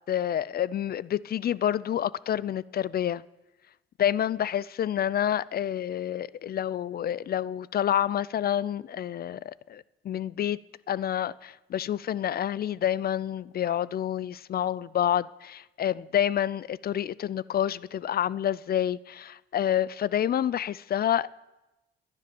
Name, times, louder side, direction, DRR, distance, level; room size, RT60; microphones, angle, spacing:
voice 1, 0.1-3.2 4.0-10.6 10.9-21.4, left 10 dB, 50° left, 0.5 m, -28 dB
19.0 x 10.5 x 6.9 m
cardioid pair, 90°, 20 cm